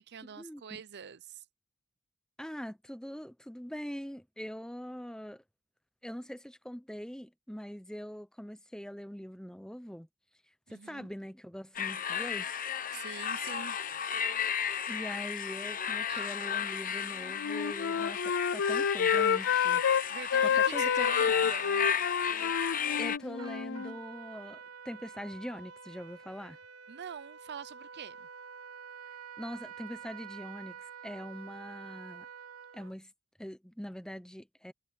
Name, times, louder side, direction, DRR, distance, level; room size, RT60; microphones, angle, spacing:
voice 1, 0.0-1.4 10.7-11.1 12.9-13.8 16.1-16.2 20.1-21.9 26.9-28.3, right 7 dB, 50° right, 0.6 m, -45 dB
voice 2, 2.4-5.4 6.0-10.1 10.7-12.5 14.9-20.1 20.4-21.5 23.0-26.6 29.4-32.3 32.7-33.1 33.4-34.7, equal, 5° left, 0.9 m, -43 dB
sound 1, 11.8-23.2, left 8 dB, 40° left, 0.9 m, -34 dB
Wind instrument woodwind instrument, 17.3-20.0 20.3-23.9, left 7 dB, 55° left, 0.5 m, -29 dB
Trumpet, 23.4-32.9, right 6 dB, 80° right, 1.3 m, -48 dB
head